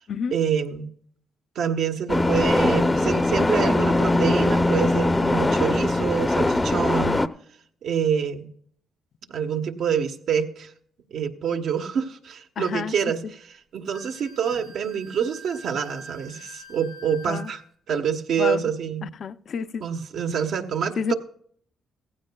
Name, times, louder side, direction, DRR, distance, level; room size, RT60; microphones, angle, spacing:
voice 1, 0.3-0.9 1.5-7.3 7.8-8.5 9.3-10.7 11.1-17.6 17.9-19.1 19.8-21.1, right 7 dB, 70° right, 1.2 m, -26 dB
sound 1, 2.1-7.3, left 2 dB, 15° left, 0.6 m, -21 dB
voice 2, 12.6-13.0 17.3-17.5 18.4-18.7 19.0-19.8 21.0-21.1, left 6 dB, 55° left, 0.5 m, -29 dB
Wind instrument woodwind instrument, 13.9-17.6, equal, 90° right, 2.6 m, -46 dB
17.0 x 15.5 x 2.3 m
cardioid pair, 90°, 0 cm